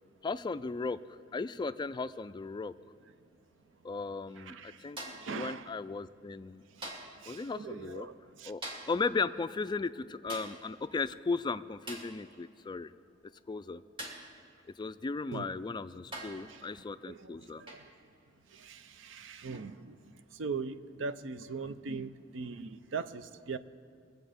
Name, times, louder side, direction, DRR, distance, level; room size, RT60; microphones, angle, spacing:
voice 1, 0.2-1.0 1.3-2.7 3.8-5.0 5.3-6.6 7.3-8.1 8.4-8.6 8.9-12.9 13.5-13.8 14.8-17.6, left 4 dB, 25° left, 0.3 m, -36 dB
voice 2, 4.4-5.7 6.7-6.9 7.2-8.5 15.3-15.5 16.5-16.7 17.1-17.8 18.5-23.6, right 4 dB, 70° right, 0.5 m, -41 dB
sound 1, 5.0-5.4 6.8-7.2 8.6-9.0 10.3-10.6 11.9-12.2 14.0-14.3 15.4-15.5 16.1-16.5 17.7-17.9 19.5-19.7, right 1 dB, 25° right, 2.4 m, -43 dB
23.0 x 7.9 x 5.1 m
head